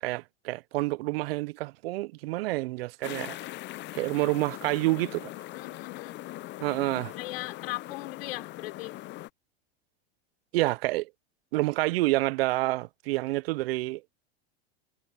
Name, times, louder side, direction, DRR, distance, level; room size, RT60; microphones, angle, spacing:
voice 1, 0.0-3.4 3.9-5.3 6.6-7.1 10.5-11.1 11.5-14.0, right 20 dB, 70° right, 0.7 m, -28 dB
sound 1, 3.0-9.3, left 17 dB, 35° left, 0.7 m, -41 dB
voice 2, 5.5-6.2 7.2-9.0, left 18 dB, 70° left, 5.9 m, -38 dB
hypercardioid pair, 110°, 31 cm